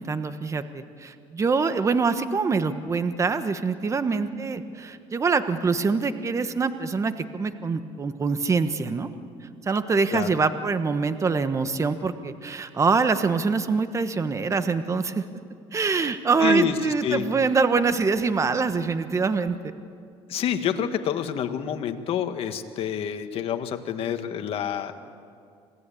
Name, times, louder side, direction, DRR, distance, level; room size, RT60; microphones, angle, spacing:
voice 1, 0.0-9.1 9.6-15.2 15.7-19.7, right 4 dB, 25° right, 10 dB, 1.3 m, -24 dB
voice 2, 16.4-17.3 20.3-24.9, left 9 dB, 60° left, 7 dB, 1.7 m, -28 dB
27.0 x 17.5 x 8.6 m, 2.3 s
cardioid pair, 105°, 11 cm